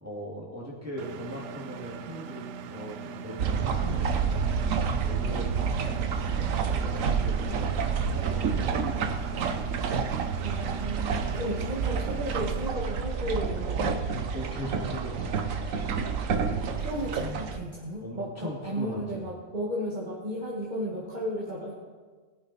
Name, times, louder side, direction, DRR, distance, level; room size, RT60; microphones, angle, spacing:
voice 1, 0.0-4.6 5.0-5.6 5.9-6.2 6.6-9.6 14.3-15.8 18.0-19.3, equal, 10° right, -4 dB, 2.3 m, -40 dB
Engine, 1.0-12.7, right 6 dB, 70° right, 0.9 m, -41 dB
sound 1, 3.4-17.6, right 6 dB, 90° right, 1.3 m, -29 dB
voice 2, 10.4-14.0 16.8-21.7, equal, 35° right, -6 dB, 2.0 m, -34 dB
18.5 x 9.1 x 4.2 m, 1.5 s
omnidirectional pair, 1.3 m